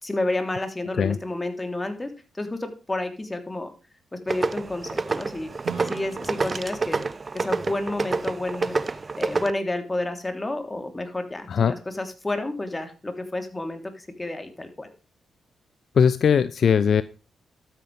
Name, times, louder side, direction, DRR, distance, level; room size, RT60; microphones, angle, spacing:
voice 1, 0.0-3.7 4.1-5.5 5.8-7.0 7.3-14.9, left 2 dB, 25° left, 7 dB, 3.3 m, -30 dB
sound 1, 4.3-9.5, right 4 dB, 40° right, 0.8 m, -28 dB
Acoustic guitar / Strum, 5.6-9.2, right 6 dB, 80° right, 2.9 m, -44 dB
voice 2, 15.9-17.0, left 7 dB, 65° left, 16 dB, 0.5 m, -19 dB
12.5 x 9.1 x 3.4 m, 0.33 s
supercardioid pair, 45°, 0 cm